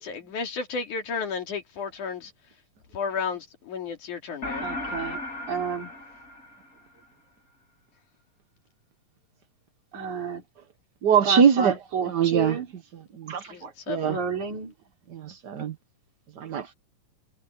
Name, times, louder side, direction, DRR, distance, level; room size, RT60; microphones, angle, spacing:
voice 1, 0.0-2.3 2.9-4.6 13.5-14.2, left 5 dB, 70° left, 4.3 m, -33 dB
sound 1, 4.4-7.0, left 1 dB, 30° left, 2.7 m, -35 dB
voice 2, 4.6-5.2 5.5-5.9 9.9-10.4 11.3-12.7 14.1-14.7, right 6 dB, 65° right, 5.8 m, -31 dB
voice 3, 11.0-11.7 12.1-12.6 13.2-14.2 15.1-15.7 16.4-16.7, right 7 dB, 80° right, 0.9 m, -23 dB
omnidirectional pair, 3.6 m